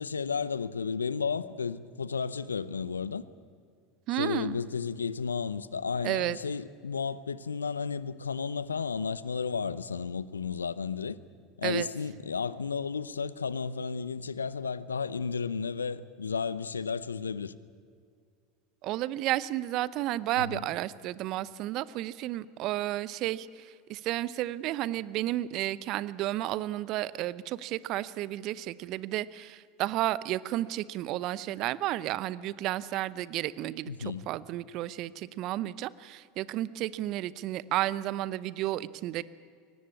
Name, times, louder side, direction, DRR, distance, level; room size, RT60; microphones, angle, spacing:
voice 1, 0.0-3.2 4.2-11.2 11.6-17.5 20.4-20.6 33.9-34.2, left 5 dB, 90° left, 0.7 m, -33 dB
voice 2, 4.1-4.6 6.0-6.4 11.6-11.9 18.8-39.2, right 15 dB, 50° right, 0.8 m, -32 dB
23.0 x 19.0 x 8.4 m
hypercardioid pair, 80°, 0 cm